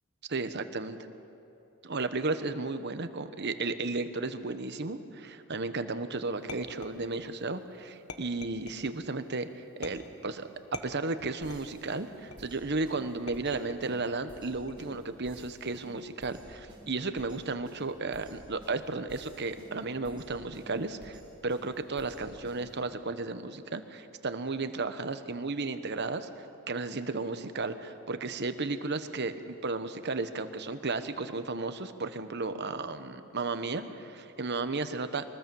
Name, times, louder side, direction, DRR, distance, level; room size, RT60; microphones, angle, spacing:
voice 1, 0.3-1.0 1.8-26.3 26.7-35.2, right 3 dB, 50° right, 10 dB, 1.1 m, -34 dB
sound 1, 6.5-7.4 8.1-9.0 9.8-10.3 10.7-11.8 12.3-12.7 13.3-13.9 14.7-15.1, left 4 dB, 80° left, 1.4 m, -45 dB
sound 2, 11.4-22.9, equal, 25° right, 3.8 m, -54 dB
24.0 x 20.0 x 7.1 m, 2.9 s
head